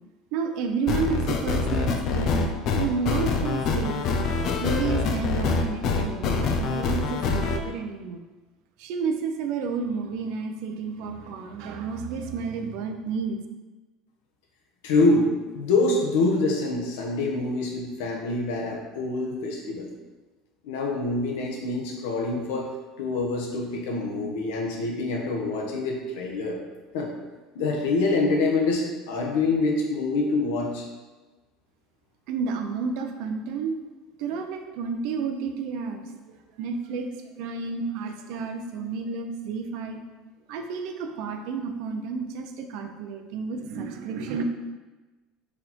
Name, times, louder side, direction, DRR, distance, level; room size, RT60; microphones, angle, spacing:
voice 1, 0.3-4.1 4.6-8.2 8.8-13.4 32.3-33.8 34.2-36.0 36.6-37.1 37.4-40.0 40.5-44.4, right 5 dB, 65° right, 5 dB, 0.7 m, -31 dB
sound 1, 0.9-7.6, left 4 dB, 45° left, 0.7 m, -25 dB
voice 2, 14.8-15.3 15.5-19.9 20.6-22.7 23.0-26.6 26.9-27.1 27.5-30.8, left 3 dB, 85° left, -1 dB, 1.4 m, -25 dB
5.0 x 4.2 x 4.5 m, 1.2 s
cardioid pair, 150°, 0 cm